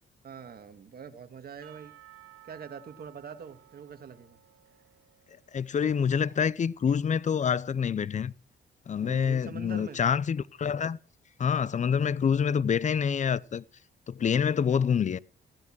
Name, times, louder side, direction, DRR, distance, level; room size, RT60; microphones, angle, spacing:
voice 1, 0.2-1.9 2.4-4.4 9.0-10.0, right 6 dB, 50° right, 2.1 m, -44 dB
Percussion / Church bell, 1.6-5.7, right 13 dB, 85° right, 2.8 m, -56 dB
voice 2, 5.5-8.3 8.9-11.0 11.4-13.6 14.1-15.2, left 7 dB, 40° left, 0.7 m, -26 dB
15.5 x 13.5 x 6.2 m
cardioid pair, 90°, 20 cm